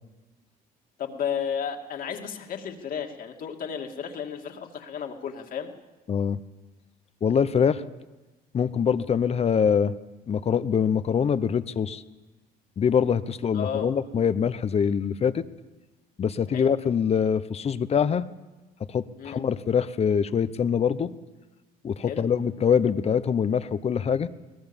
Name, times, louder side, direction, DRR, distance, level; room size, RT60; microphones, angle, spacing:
voice 1, 1.0-5.7 13.5-13.9 16.5-16.7 19.2-19.4 22.1-22.3, left 7 dB, 55° left, 3 dB, 2.5 m, -33 dB
voice 2, 6.1-6.4 7.2-7.8 8.5-9.9 10.3-12.0 12.8-15.4 16.2-18.2 18.9-21.1 21.8-24.3, left 7 dB, 35° left, 14 dB, 0.9 m, -24 dB
22.0 x 19.0 x 7.3 m, 1.2 s
cardioid pair, 110°, 17 cm